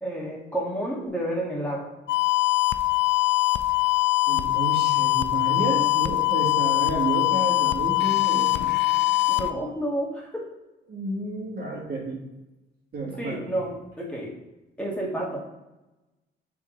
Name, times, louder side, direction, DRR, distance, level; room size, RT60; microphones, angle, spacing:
voice 1, 0.0-1.9 9.3-10.4 13.2-14.3 14.8-15.4, right 1 dB, 5° left, -4 dB, 1.7 m, -30 dB
sound 1, 2.1-9.5, left 19 dB, 60° left, 0.4 m, -22 dB
voice 2, 4.3-8.7 10.9-12.2 12.9-13.5, right 2 dB, 50° right, -2 dB, 1.5 m, -31 dB
7.2 x 3.5 x 3.8 m, 1.0 s
cardioid pair, 90°, 20 cm